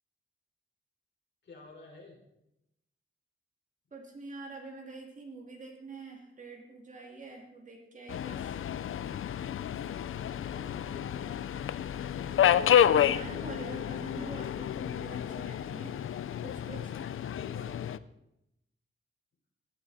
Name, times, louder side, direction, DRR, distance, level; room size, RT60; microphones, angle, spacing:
voice 1, 1.4-2.2 10.1-11.4 16.5-18.0, left 3 dB, 60° left, -2 dB, 4.7 m, -51 dB
voice 2, 3.9-8.6 13.0-16.0 16.4-16.9, right 3 dB, 40° right, 1 dB, 2.5 m, -45 dB
Subway metro underground, 8.1-18.0, left 9 dB, 80° left, 0.5 m, -30 dB
19.0 x 11.5 x 4.2 m, 0.85 s
wide cardioid pair, 175°, 21 cm